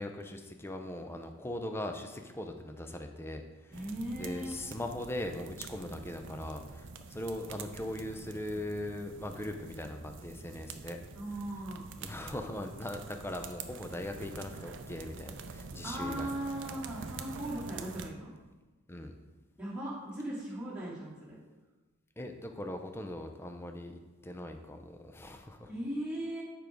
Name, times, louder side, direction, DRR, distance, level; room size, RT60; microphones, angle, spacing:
voice 1, 0.0-3.8 4.2-11.0 12.0-16.3 18.9-19.1 22.2-25.7, left 1 dB, 10° left, 5 dB, 0.4 m, -40 dB
voice 2, 3.7-4.6 11.1-11.9 15.8-18.3 19.6-21.4 25.7-26.4, right 1 dB, 5° right, -9 dB, 2.6 m, -38 dB
sound 1, 3.7-18.1, right 4 dB, 55° right, 0.5 m, -46 dB
7.2 x 4.6 x 5.0 m, 1.2 s
head